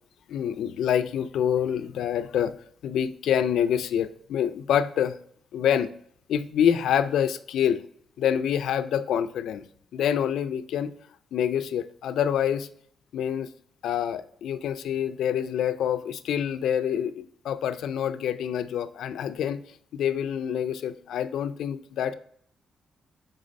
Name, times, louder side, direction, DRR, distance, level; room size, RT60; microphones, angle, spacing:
voice 1, 0.3-2.5 2.8-5.2 5.5-5.9 6.3-7.8 8.2-9.6 9.9-10.9 11.3-12.7 13.1-13.5 13.8-19.6 19.9-22.1, left 9 dB, 85° left, 0.4 m, -26 dB
5.1 x 3.8 x 5.1 m
cardioid pair, 80°, 0 cm